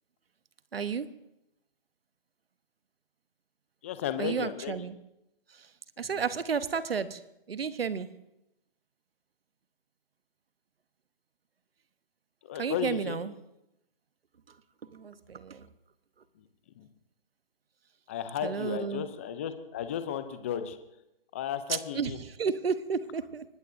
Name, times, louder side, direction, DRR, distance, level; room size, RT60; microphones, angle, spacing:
voice 1, 0.7-1.1 4.2-5.0 5.5-5.7 6.0-7.2 7.5-8.1 12.6-13.3 14.5-14.6 14.9-15.7 18.4-19.1 21.7-23.5, right 6 dB, 75° right, 13 dB, 1.1 m, -32 dB
voice 2, 3.8-4.7 12.4-13.2 16.4-16.5 16.8-16.9 18.1-20.8 21.3-22.2, left 9 dB, 15° left, 10 dB, 0.5 m, -34 dB
25.0 x 19.5 x 2.7 m, 0.86 s
hypercardioid pair, 150°, 29 cm